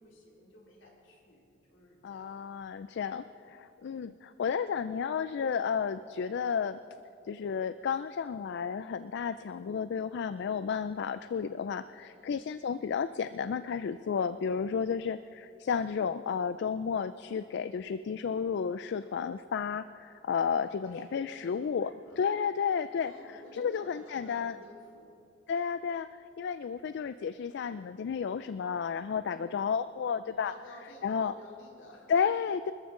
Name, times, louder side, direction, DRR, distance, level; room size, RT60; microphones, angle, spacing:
voice 1, 0.0-2.5 12.2-12.5 20.6-22.3 22.9-25.2 29.3-29.6 30.2-32.1, left 1 dB, 75° left, -4 dB, 4.1 m, -54 dB
voice 2, 2.0-6.8 7.3-21.9 22.2-23.1 23.5-24.6 25.5-30.5 31.0-31.3 32.1-32.7, left 6 dB, 60° left, 13 dB, 0.3 m, -32 dB
25.5 x 14.0 x 3.8 m, 2.6 s
head